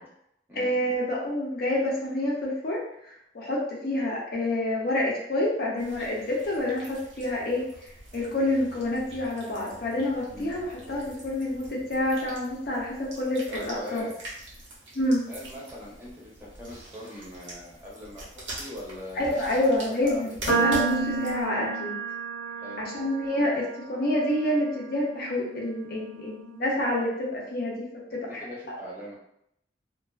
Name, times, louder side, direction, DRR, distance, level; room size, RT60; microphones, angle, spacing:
voice 1, 0.5-7.6 8.1-14.0 14.9-15.2 19.2-22.0 22.8-28.4 28.7-28.8, left 1 dB, 55° left, -3 dB, 0.6 m, -28 dB
sound 1, 5.8-21.5, right 1 dB, 80° right, 0.8 m, -44 dB
voice 2, 13.5-14.1 15.3-18.2 18.5-19.3 19.8-20.6 22.6-22.9 28.1-29.2, left 1 dB, 10° right, -7 dB, 0.8 m, -41 dB
sound 2, 20.5-26.8, right 4 dB, 90° left, 0.7 m, -32 dB
2.3 x 2.3 x 2.3 m, 0.75 s
head